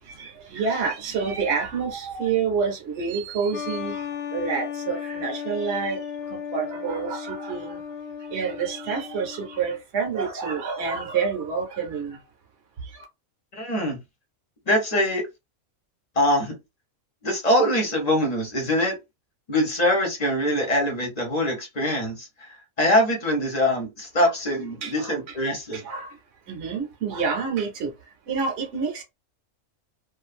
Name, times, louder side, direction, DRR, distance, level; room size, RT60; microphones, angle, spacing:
voice 1, 0.1-6.0 6.3-7.8 8.3-12.2 12.9-13.0 24.2-24.3 24.8-25.2 25.7-26.1 26.5-27.9 28.3-29.0, right 5 dB, 55° right, 1.0 m, -28 dB
sound 1, 3.5-9.8, left 7 dB, 65° left, 0.6 m, -35 dB
voice 2, 13.5-14.0 14.7-15.3 16.2-16.5 17.2-19.0 19.5-25.8, left 1 dB, 30° left, 1.0 m, -23 dB
2.5 x 2.5 x 2.4 m
omnidirectional pair, 1.5 m